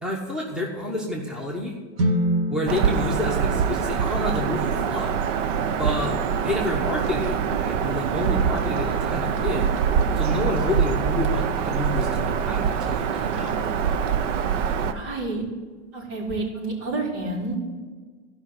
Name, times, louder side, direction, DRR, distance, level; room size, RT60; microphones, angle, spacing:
voice 1, 0.0-1.7 2.5-5.2 5.8-6.2 6.4-9.7 10.2-13.6, left 1 dB, ahead, -1 dB, 1.2 m, -29 dB
sound 1, 2.0-6.0, equal, 35° right, 1.7 m, -29 dB
Bird vocalization bird call bird song, 2.7-14.9, right 7 dB, 85° right, 0.9 m, -24 dB
voice 2, 14.9-15.4 15.9-17.6, right 2 dB, 70° right, -3 dB, 4.4 m, -29 dB
13.5 x 5.6 x 7.8 m, 1.5 s
supercardioid pair, 150°, 36 cm